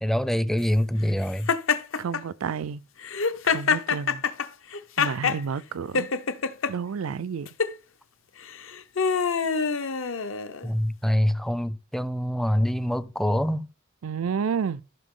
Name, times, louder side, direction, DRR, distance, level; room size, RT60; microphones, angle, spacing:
voice 1, 0.0-1.5 10.6-13.7, equal, ahead, 0.4 m, -25 dB
Laughter, 1.5-2.2 3.0-5.4 5.9-6.7 7.5-7.7 8.5-10.7, left 5 dB, 65° left, 0.7 m, -25 dB
voice 2, 2.0-2.8 3.5-4.2 5.0-6.1 6.7-7.5 14.0-14.8, right 6 dB, 85° right, 0.4 m, -30 dB
14.5 x 5.7 x 3.7 m
head